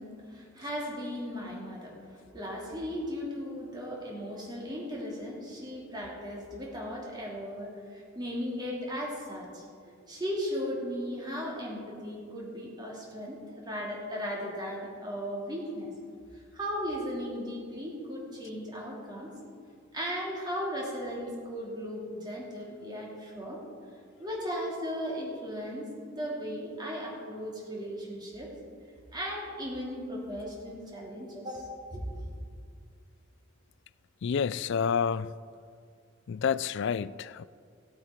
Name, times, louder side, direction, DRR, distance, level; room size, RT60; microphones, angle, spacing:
voice 1, 0.0-15.9 16.5-19.3 19.9-23.6 24.2-28.5 29.1-32.3, equal, 20° right, 2.9 m, -37 dB
voice 2, 34.2-35.3 36.3-37.4, left 6 dB, 65° left, 0.4 m, -29 dB
18.0 x 8.4 x 4.5 m
head